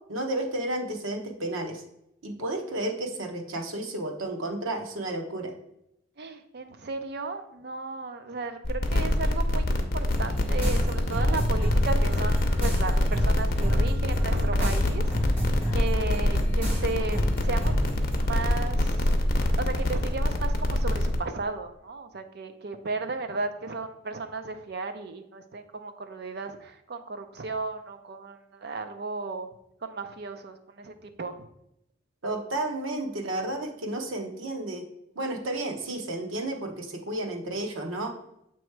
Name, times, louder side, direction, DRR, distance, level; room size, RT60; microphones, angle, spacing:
voice 1, 0.0-1.8 2.2-5.5 32.2-34.8 35.1-38.1, right 1 dB, 90° right, 3 dB, 1.0 m, -32 dB
voice 2, 6.2-17.9 18.2-19.1 19.6-29.5 29.8-31.5, right 3 dB, 55° right, 8 dB, 0.5 m, -35 dB
sound 1, 8.6-21.2, left 1 dB, 45° left, 0.7 m, -25 dB
sound 2, 10.1-18.3, left 1 dB, 5° right, 2.5 m, -29 dB
7.3 x 3.0 x 4.5 m, 0.81 s
head